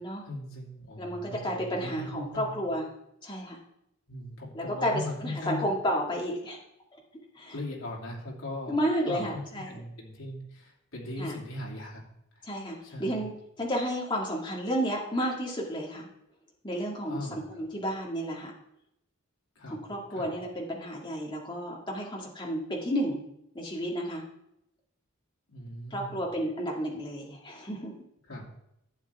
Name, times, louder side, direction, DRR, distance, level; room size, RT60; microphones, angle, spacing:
voice 1, 0.2-2.5 4.1-5.7 7.5-8.7 9.0-12.0 12.4-12.5 12.8-13.3 17.1-17.4 19.6-19.8 20.1-20.3 25.5-26.2 28.3-28.5, left 1 dB, 75° left, -3 dB, 2.8 m, -39 dB
voice 2, 1.0-2.8 3.2-3.6 4.5-6.6 6.9-7.0 7.4-7.5 8.7-9.8 11.2-11.3 12.5-13.3 13.6-16.1 16.6-17.2 17.5-18.5 19.7-23.2 23.6-24.2 25.9-27.9, equal, 20° left, -2 dB, 1.9 m, -31 dB
11.5 x 8.0 x 3.5 m, 0.79 s
head